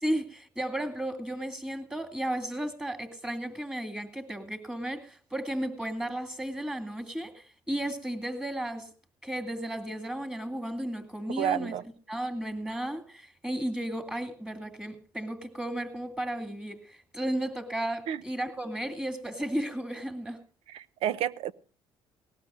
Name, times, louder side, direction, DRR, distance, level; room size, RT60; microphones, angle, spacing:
voice 1, 0.0-8.9 9.2-11.7 12.1-20.4, right 1 dB, 10° right, 2.3 m, -34 dB
voice 2, 11.4-11.8 18.1-18.2 20.7-21.5, right 10 dB, 80° right, 0.7 m, -30 dB
19.5 x 17.0 x 2.5 m
cardioid pair, 90°, 10 cm